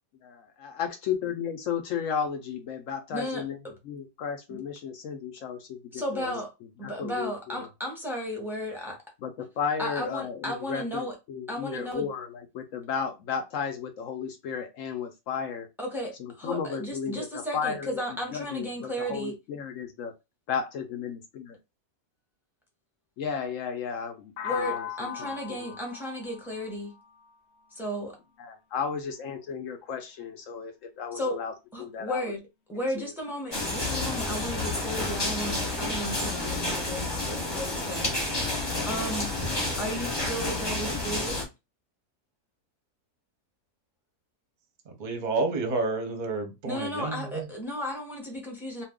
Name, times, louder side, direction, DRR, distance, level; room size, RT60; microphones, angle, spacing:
voice 1, 0.2-3.6 3.8-6.4 6.8-7.3 9.2-15.7 16.2-18.0 18.3-20.1 20.5-21.6 23.2-25.7 28.4-31.5 31.8-32.3 33.0-33.1, left 7 dB, 70° left, 0.8 m, -34 dB
voice 2, 3.1-3.7 4.5-4.6 5.9-6.5 6.8-9.0 9.8-11.1 11.5-12.1 15.8-19.3 24.4-26.9 27.7-28.2 31.1-31.4 31.7-32.4 32.7-39.3 39.8-41.4 46.6-48.8, equal, ahead, 0.6 m, -34 dB
sound 1, 24.4-28.2, left 9 dB, 85° left, 1.1 m, -39 dB
sound 2, 33.5-41.4, left 2 dB, 20° left, 1.0 m, -30 dB
voice 3, 45.0-47.5, right 3 dB, 40° right, 0.7 m, -30 dB
2.5 x 2.3 x 3.5 m
omnidirectional pair, 1.6 m